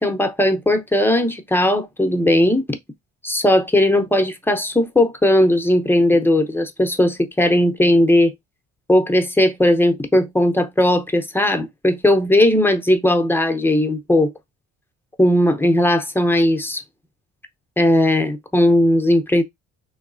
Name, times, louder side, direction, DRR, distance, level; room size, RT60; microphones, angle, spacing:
voice 1, 0.0-2.8 3.2-8.3 8.9-14.3 15.2-16.8 17.8-19.4, left 1 dB, 5° left, 0.7 m, -17 dB
3.4 x 3.1 x 2.5 m
cardioid pair, 90°, 30 cm